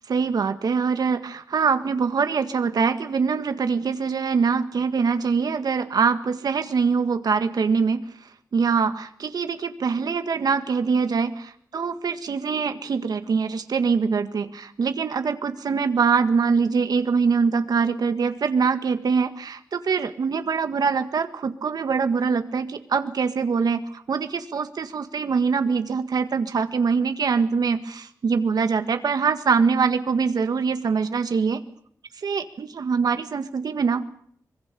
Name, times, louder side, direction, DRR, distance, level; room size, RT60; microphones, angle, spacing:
voice 1, 0.1-8.0 8.5-31.6 32.2-34.0, right 5 dB, 80° right, 8 dB, 1.8 m, -23 dB
25.0 x 23.0 x 6.9 m, 0.62 s
wide cardioid pair, 150°, 7 cm